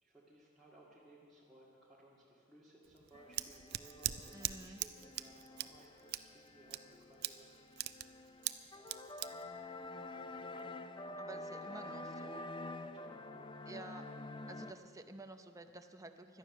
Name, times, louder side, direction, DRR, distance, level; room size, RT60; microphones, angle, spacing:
voice 1, 0.0-7.5 8.7-13.8, right 1 dB, ahead, -7 dB, 1.9 m, -61 dB
Scissors, 2.8-10.6, right 13 dB, 55° right, 0.5 m, -43 dB
sound 1, 3.1-14.7, left 2 dB, 25° left, 0.5 m, -48 dB
voice 2, 4.3-4.8 11.2-12.4 13.7-14.0 14.5-16.4, right 2 dB, 15° right, 7 dB, 0.7 m, -51 dB
17.5 x 12.0 x 6.0 m, 2.5 s
head